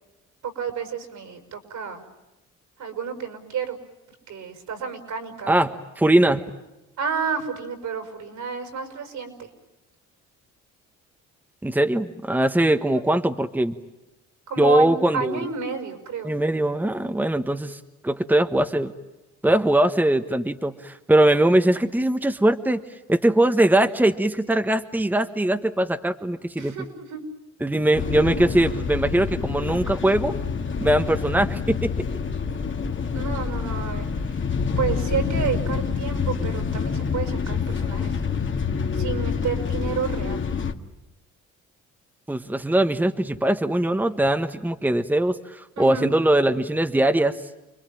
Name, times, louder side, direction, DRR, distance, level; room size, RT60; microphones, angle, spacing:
voice 1, 0.4-2.0 2.8-3.8 4.3-5.6 7.0-9.5 14.5-16.3 26.6-27.2 33.1-34.4 34.8-38.5 38.9-40.4 45.8-46.1, right 6 dB, 75° right, 7 dB, 5.7 m, -31 dB
voice 2, 5.5-6.4 11.6-13.7 14.6-15.4 16.2-18.9 19.4-22.8 23.1-26.7 27.6-30.4 30.8-31.9 42.3-47.4, right 1 dB, 5° right, 7 dB, 1.3 m, -21 dB
sound 1, 27.9-40.7, left 6 dB, 40° left, 2.0 m, -27 dB
29.5 x 22.0 x 9.0 m, 1.0 s
cardioid pair, 90°, 30 cm